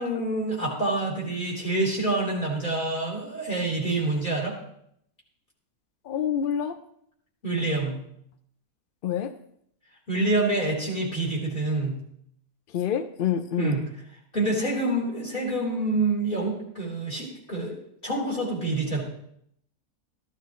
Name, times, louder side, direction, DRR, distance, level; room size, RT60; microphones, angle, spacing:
voice 1, 0.0-4.6 7.4-8.0 10.1-12.0 13.6-13.9 14.3-17.8 18.0-19.0, right 2 dB, 35° left, -4 dB, 4.1 m, -27 dB
voice 2, 6.1-6.8 9.0-9.3 12.7-13.8, left 9 dB, 65° left, 10 dB, 0.5 m, -27 dB
14.5 x 12.5 x 3.1 m, 0.71 s
omnidirectional pair, 1.6 m